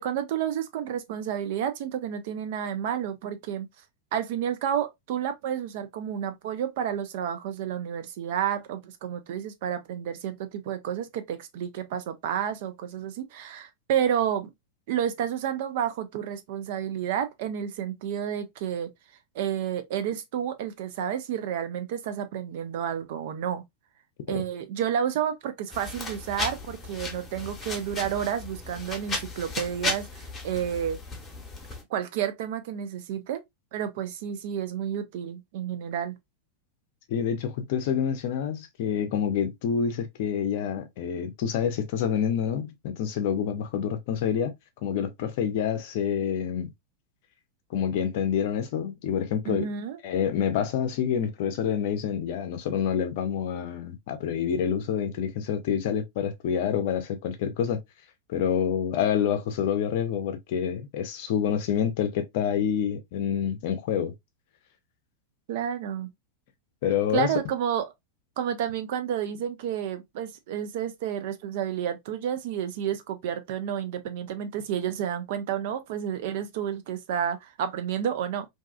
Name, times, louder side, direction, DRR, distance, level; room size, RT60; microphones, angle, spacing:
voice 1, 0.0-3.7 4.1-14.5 14.9-18.9 19.3-23.6 24.3-31.0 31.9-33.4 33.7-36.2 49.4-50.0 65.5-66.1 67.1-67.8 68.4-78.5, right 9 dB, 50° right, 0.5 m, -30 dB
sound 1, 25.7-31.8, left 3 dB, 20° left, 0.9 m, -35 dB
voice 2, 37.1-44.5 44.8-46.7 47.7-49.7 50.0-57.8 58.3-64.1 66.8-67.3, left 8 dB, 50° left, 0.5 m, -27 dB
2.6 x 2.3 x 2.3 m
figure-of-eight pair, 90°, 0 cm